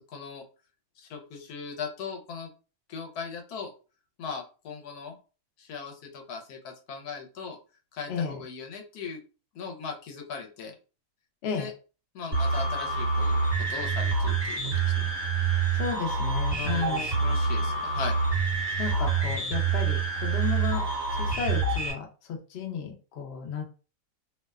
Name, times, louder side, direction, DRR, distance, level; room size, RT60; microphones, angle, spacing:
voice 1, 0.1-0.4 1.0-2.5 2.9-3.7 4.2-5.1 5.6-7.6 7.9-9.2 9.5-10.7 11.6-11.7 12.1-14.6 14.8-15.1 16.6-18.2, left 5 dB, 80° left, 3 dB, 1.1 m, -38 dB
voice 2, 8.1-8.4 11.4-11.7 15.7-17.1 18.8-20.9 21.1-23.6, left 6 dB, 65° left, 2 dB, 0.6 m, -33 dB
sound 1, 12.3-21.9, right 4 dB, 30° right, 1.2 m, -27 dB
2.6 x 2.1 x 2.3 m, 0.35 s
omnidirectional pair, 1.6 m